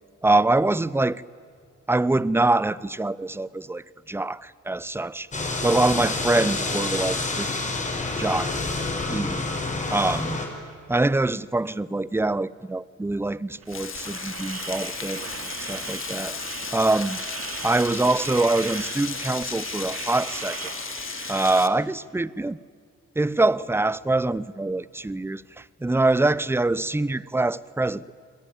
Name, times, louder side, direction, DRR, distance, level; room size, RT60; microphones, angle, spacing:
voice 1, 0.2-1.2 1.9-5.3 5.6-7.6 8.2-8.6 9.1-9.4 9.9-10.4 10.9-16.4 16.7-17.2 17.6-20.6 21.3-22.6 23.2-28.0, right 2 dB, 10° right, 0.6 m, -24 dB
sound 1, 5.3-10.5, left 3 dB, 25° left, 4.9 m, -28 dB
sound 2, 13.6-21.6, right 6 dB, 50° right, 2.5 m, -38 dB
Frying (food), 13.7-21.7, left 7 dB, 45° left, 1.6 m, -35 dB
29.0 x 22.0 x 9.0 m
cardioid pair, 90°, 30 cm